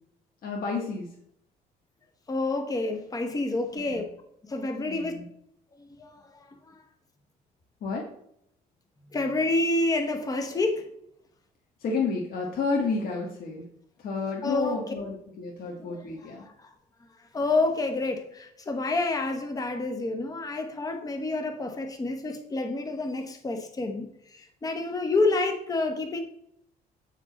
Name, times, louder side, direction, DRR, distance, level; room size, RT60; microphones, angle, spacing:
voice 1, 0.4-1.1 3.9-4.0 4.8-5.2 7.8-8.1 11.8-13.6 14.0-16.5, left 4 dB, 60° left, -1 dB, 1.5 m, -30 dB
voice 2, 2.3-4.1 4.4-5.1 5.8-6.8 9.1-10.9 14.4-14.9 15.8-16.7 17.3-26.2, left 2 dB, 20° left, 5 dB, 1.0 m, -29 dB
8.5 x 4.8 x 4.1 m, 0.72 s
cardioid pair, 110°, 17 cm